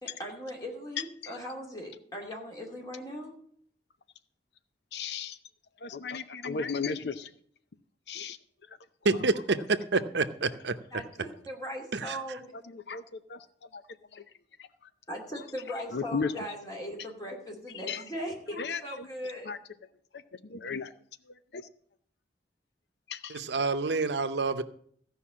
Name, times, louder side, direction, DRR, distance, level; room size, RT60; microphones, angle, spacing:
voice 1, 0.0-3.4 10.9-12.5 15.1-19.5, equal, 20° left, -1 dB, 2.5 m, -39 dB
voice 2, 4.9-5.4 5.8-7.3 8.1-8.4 12.7-13.4 13.7-13.8 14.1-14.2 14.6-14.7 15.9-16.3 17.9-18.0 18.6-19.1 19.5-19.6 20.4-20.9 21.3-21.6 23.1-23.4, left 5 dB, 80° left, 12 dB, 0.6 m, -35 dB
voice 3, 9.0-10.8 11.9-12.2 23.3-24.6, right 3 dB, 85° right, 11 dB, 0.7 m, -28 dB
15.0 x 5.4 x 7.4 m, 0.62 s
head